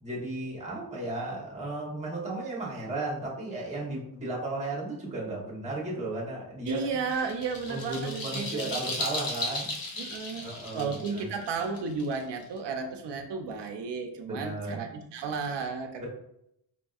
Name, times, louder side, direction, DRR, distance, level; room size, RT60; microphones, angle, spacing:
voice 1, 0.0-6.8 7.7-9.7 10.4-11.2 14.2-14.8, right 2 dB, 15° right, -4 dB, 1.0 m, -34 dB
voice 2, 6.7-8.8 10.0-16.1, right 4 dB, 75° right, 5 dB, 0.6 m, -33 dB
sound 1, 6.8-12.6, left 2 dB, 55° left, 0.8 m, -36 dB
4.8 x 2.6 x 2.3 m, 0.77 s
wide cardioid pair, 150°, 42 cm